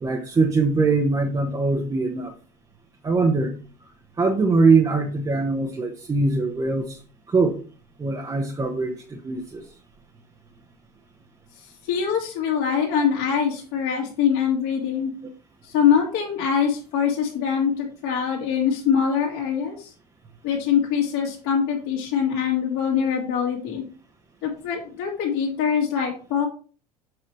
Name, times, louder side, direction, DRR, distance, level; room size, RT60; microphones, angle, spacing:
voice 1, 0.0-2.3 3.0-3.5 4.2-7.0 7.3-7.6 8.0-9.6, right 3 dB, 20° right, 2 dB, 1.1 m, -22 dB
voice 2, 11.8-15.1 15.6-19.9 20.4-23.8 24.4-26.5, left 7 dB, 50° left, -2 dB, 2.3 m, -23 dB
7.8 x 5.7 x 3.2 m, 0.38 s
figure-of-eight pair, 75°, 21 cm